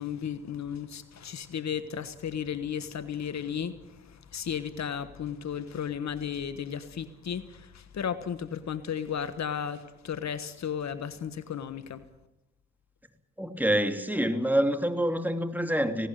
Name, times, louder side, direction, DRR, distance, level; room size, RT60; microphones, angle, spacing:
voice 1, 0.0-12.0, left 8 dB, 65° left, 1.4 m, -34 dB
voice 2, 13.4-16.1, equal, 5° right, 2.9 m, -26 dB
18.5 x 17.5 x 9.2 m
supercardioid pair, 40°, 30 cm